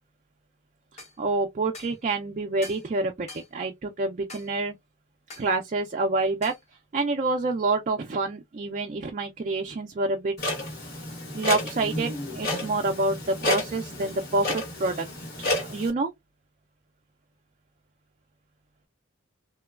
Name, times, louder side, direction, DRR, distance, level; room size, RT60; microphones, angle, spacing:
sound 1, 1.0-1.2 1.7-2.0 2.6-2.9 3.3-3.5 4.3-4.5 5.3-5.5 6.4-6.6, left 2 dB, 30° left, 0.6 m, -43 dB
voice 1, 1.2-4.7 5.4-6.5 6.9-10.3 11.3-15.1 15.4-16.1, right 3 dB, 35° right, 0.3 m, -27 dB
Clock, 10.4-15.9, left 2 dB, 50° left, 1.0 m, -31 dB
3.0 x 2.2 x 2.3 m
head